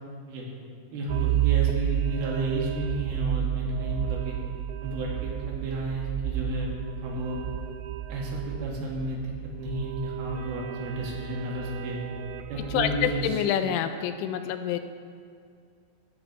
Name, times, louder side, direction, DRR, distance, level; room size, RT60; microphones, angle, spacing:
voice 1, 0.9-4.4 4.8-6.8 7.0-7.4 8.1-9.3 9.6-12.0 12.5-13.4, right 1 dB, 60° right, -3 dB, 3.6 m, -32 dB
sound 1, 1.1-13.3, right 14 dB, 85° right, 2.7 m, -31 dB
voice 2, 12.7-14.8, left 9 dB, 85° left, 8 dB, 3.1 m, -27 dB
19.0 x 9.5 x 3.4 m, 2.3 s
omnidirectional pair, 5.5 m